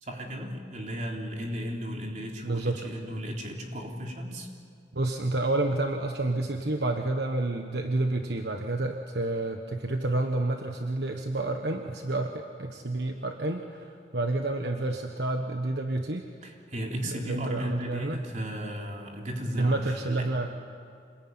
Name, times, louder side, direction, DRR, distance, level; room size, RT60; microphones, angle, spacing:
voice 1, 0.0-4.5 16.4-20.3, equal, 40° right, 1 dB, 3.5 m, -35 dB
voice 2, 2.4-2.8 4.9-16.3 17.0-18.2 19.6-20.5, right 2 dB, 65° right, 4 dB, 1.3 m, -29 dB
27.0 x 21.0 x 9.5 m, 2.4 s
head